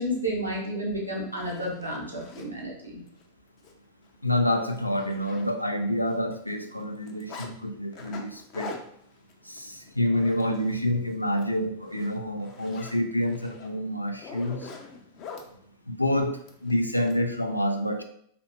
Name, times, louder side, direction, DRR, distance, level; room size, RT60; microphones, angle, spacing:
voice 1, 0.0-3.0, equal, 85° right, -3 dB, 1.1 m, -31 dB
Zipper (clothing), 0.7-0.8 1.2-2.5 3.1-3.2 3.6-3.7 4.1-4.2 4.5-5.8 6.1-7.5 7.9-10.9 11.2-11.5 11.8-15.5 16.5-17.2, left 5 dB, 40° left, 0.6 m, -44 dB
voice 2, 4.2-8.8 9.5-14.7 15.9-18.0, left 1 dB, 90° left, 6 dB, 0.4 m, -28 dB
4.1 x 2.8 x 2.8 m, 0.66 s
figure-of-eight pair, 90°, 0 cm